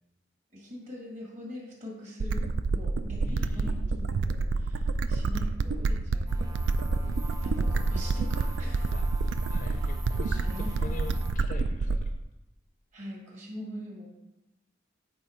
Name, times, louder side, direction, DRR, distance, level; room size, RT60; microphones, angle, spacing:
voice 1, 0.5-6.9 7.4-9.0 10.4-11.1 12.9-14.1, equal, 40° right, -2 dB, 1.8 m, -43 dB
sound 1, 2.2-12.2, right 3 dB, 80° right, 0.3 m, -28 dB
voice 2, 3.2-3.7 8.9-12.1, left 2 dB, 45° left, 5 dB, 0.5 m, -43 dB
sound 2, 6.3-11.3, equal, 20° right, 0.6 m, -40 dB
8.7 x 3.5 x 4.4 m, 0.95 s
head